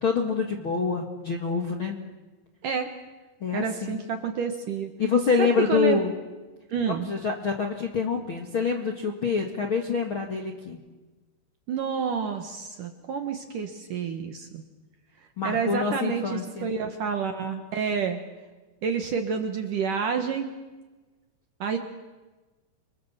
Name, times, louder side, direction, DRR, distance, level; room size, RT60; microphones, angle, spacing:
voice 1, 0.0-1.9 3.4-4.0 5.0-6.1 7.0-10.8 15.4-16.7, left 5 dB, 50° left, 2 dB, 1.5 m, -26 dB
voice 2, 3.5-4.9 5.4-6.0 6.7-7.1 11.7-14.6 15.4-18.2 18.8-20.5 21.6-21.8, right 6 dB, 65° right, 6 dB, 2.3 m, -29 dB
29.5 x 24.5 x 7.3 m, 1.2 s
omnidirectional pair, 5.3 m